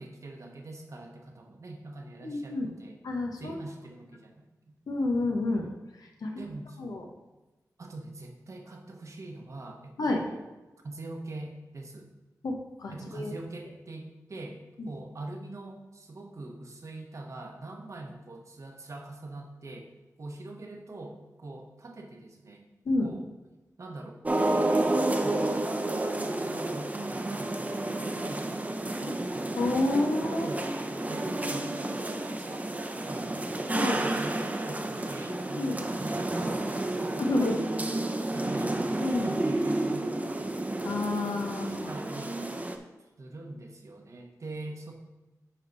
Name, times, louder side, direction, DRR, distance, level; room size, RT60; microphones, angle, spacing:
voice 1, 0.0-3.0 3.4-4.8 6.4-7.0 7.8-10.4 10.8-12.1 12.9-19.9 20.2-22.7 23.0-23.3 23.8-29.2 30.4-30.7 31.1-38.8 39.1-40.5 41.3-42.4 43.2-44.9, right 2 dB, 55° right, 2 dB, 1.1 m, -43 dB
voice 2, 2.2-2.7 3.0-3.6 4.9-5.7 6.0-6.4 6.8-7.0 10.0-10.2 12.4-13.3 14.8-14.9 22.8-23.1 29.0-29.1 29.6-30.5 33.7-34.0 35.6-35.8 37.2-37.6 39.0-39.3 40.8-41.9, left 2 dB, 85° left, 1 dB, 1.1 m, -29 dB
sound 1, 24.2-42.8, right 2 dB, 25° right, 0.7 m, -30 dB
9.8 x 3.7 x 4.0 m, 1.1 s
cardioid pair, 65°, 6 cm